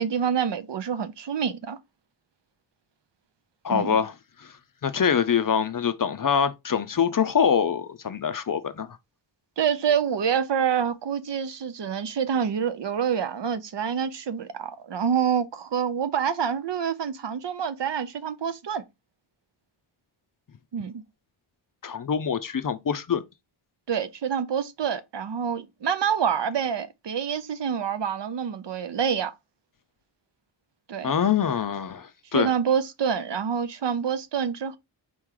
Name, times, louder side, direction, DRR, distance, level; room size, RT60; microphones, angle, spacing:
voice 1, 0.0-1.8 3.7-4.0 9.6-18.8 20.7-21.0 23.9-29.3 30.9-31.1 32.3-34.8, right 7 dB, 60° right, 0.6 m, -27 dB
voice 2, 3.6-4.1 4.4-4.5 4.8-8.9 21.8-23.2 31.0-32.5, left 7 dB, 45° left, 0.5 m, -24 dB
4.4 x 3.1 x 3.7 m
wide cardioid pair, 95°, 48 cm